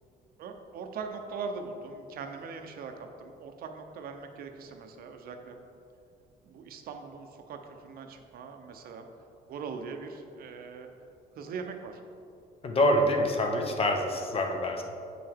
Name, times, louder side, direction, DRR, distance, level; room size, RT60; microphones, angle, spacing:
voice 1, 0.4-5.6 6.4-9.1 9.5-10.9 11.4-12.0, right 5 dB, 65° right, 5 dB, 0.7 m, -41 dB
voice 2, 12.6-14.8, left 1 dB, 35° left, 3 dB, 0.8 m, -26 dB
7.7 x 5.6 x 3.5 m, 2.5 s
cardioid pair, 110°, 17 cm